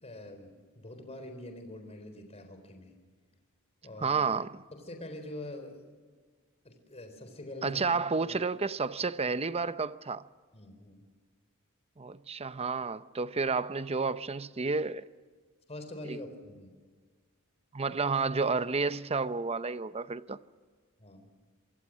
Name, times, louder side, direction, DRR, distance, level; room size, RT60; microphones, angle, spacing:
voice 1, 0.0-2.9 3.8-4.2 4.8-5.8 6.6-7.9 8.3-8.4 10.5-11.0 15.7-16.7 17.9-18.0 21.0-21.3, left 1 dB, 30° left, 4.1 m, -44 dB
voice 2, 4.0-4.6 7.6-10.3 12.0-15.1 16.1-16.2 17.7-20.4, right 4 dB, 30° right, 0.7 m, -31 dB
27.0 x 24.0 x 6.3 m
head